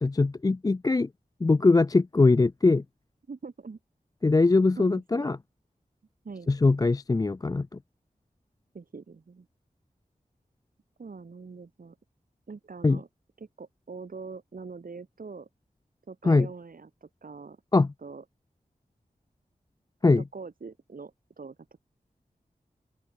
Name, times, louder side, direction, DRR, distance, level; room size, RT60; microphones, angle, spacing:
voice 1, 0.0-1.1 1.4-2.8 4.2-5.4 6.5-7.7 12.8-13.0 16.2-16.5 17.7-17.9 20.0-20.2, left 3 dB, 25° left, 0.4 m, -22 dB
voice 2, 3.3-3.8 4.8-5.3 6.2-6.5 8.7-9.5 11.0-12.0 12.5-13.1 13.4-15.5 16.1-17.6 18.0-18.2 20.2-21.6, right 4 dB, 75° right, 4.6 m, -43 dB
open air
wide cardioid pair, 95°, 15 cm